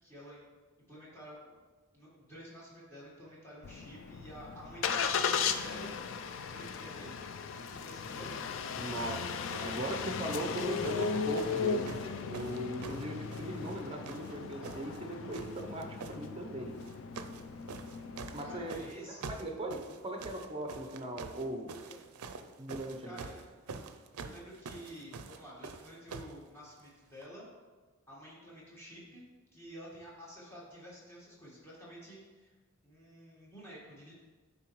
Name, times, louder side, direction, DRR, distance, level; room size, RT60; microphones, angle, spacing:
voice 1, 0.0-0.4 0.9-1.6 1.9-5.9 6.5-7.1 7.7-8.3 18.3-19.3 21.8-22.0 23.0-23.5 24.2-27.4 28.1-29.2 29.5-32.5 32.8-34.1, equal, 10° left, -7 dB, 1.5 m, -50 dB
Engine starting, 3.6-18.9, left 6 dB, 60° left, 0.3 m, -37 dB
voice 2, 8.7-12.0 12.3-16.8 18.3-21.8 22.6-23.2, right 1 dB, 25° right, 3 dB, 0.6 m, -39 dB
sound 1, 9.7-9.9 10.3-13.8 14.0-15.0 15.3-16.2 16.8-17.4 17.7-26.4 27.2-27.3, right 4 dB, 85° right, 0.4 m, -46 dB
9.5 x 3.9 x 3.1 m, 1.4 s
head